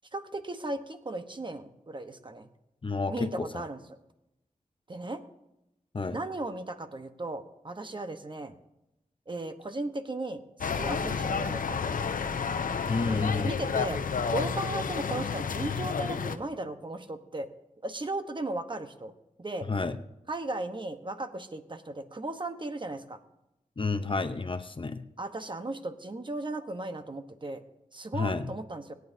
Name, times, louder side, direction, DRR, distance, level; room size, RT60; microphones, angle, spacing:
voice 1, 0.1-2.5 3.1-3.8 4.9-5.2 6.0-8.5 9.3-11.8 13.1-14.0 14.3-17.5 17.8-19.1 19.4-19.7 20.3-23.2 25.2-27.6 27.9-28.9, right 2 dB, 35° right, 8 dB, 1.0 m, -36 dB
voice 2, 2.8-3.6 5.9-6.2 12.9-13.6 19.7-20.0 23.8-25.0 28.1-28.5, left 4 dB, 40° left, 10 dB, 0.7 m, -30 dB
sound 1, 10.6-16.4, left 6 dB, 80° left, 0.7 m, -30 dB
27.5 x 9.4 x 2.7 m, 0.89 s
wide cardioid pair, 75°, 14 cm